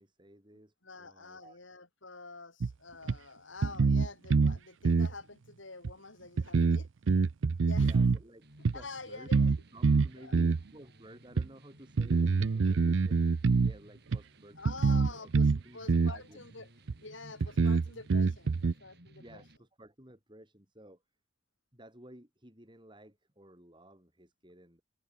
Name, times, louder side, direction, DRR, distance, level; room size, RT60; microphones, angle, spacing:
voice 1, 0.0-1.6 7.7-8.5 8.7-9.3 9.7-14.6 14.9-15.3 15.6-16.7 19.2-21.0 21.7-24.8, right 1 dB, 25° right, 7.4 m, -54 dB
voice 2, 0.8-6.9 7.6-8.1 8.7-9.6 10.2-10.4 14.6-16.7 17.0-19.4, left 3 dB, 85° left, 6.1 m, -47 dB
sound 1, 2.6-2.7 3.1-3.2 3.6-4.6 4.8-5.1 5.8-5.9 6.4-8.2 8.6-8.8 9.3-9.6 9.8-10.6 11.4-11.5 12.0-13.7 14.1-14.2 14.6-15.6 15.9-16.2 16.9-17.0 17.4-18.7, right 4 dB, 80° right, 0.5 m, -25 dB
sound 2, 8.4-19.6, right 1 dB, 55° right, 5.6 m, -58 dB
head